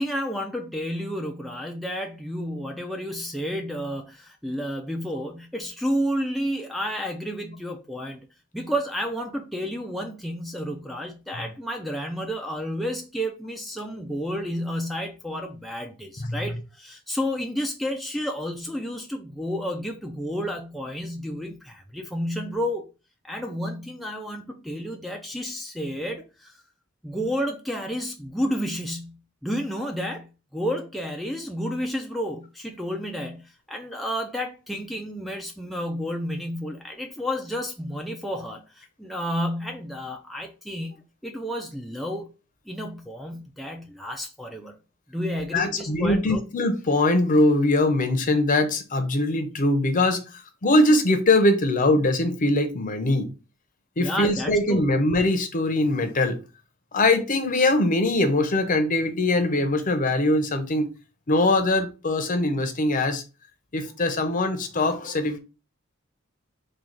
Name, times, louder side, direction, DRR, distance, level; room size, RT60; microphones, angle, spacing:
voice 1, 0.0-8.3 8.5-22.9 23.2-26.6 27.0-41.0 41.2-42.3 42.7-44.7 45.1-46.4 54.0-54.8, equal, ahead, 0.4 m, -31 dB
voice 2, 45.5-53.3 54.0-56.4 56.9-60.9 61.3-63.2 63.7-65.4, left 2 dB, 40° left, 0.7 m, -22 dB
3.7 x 2.3 x 4.5 m
head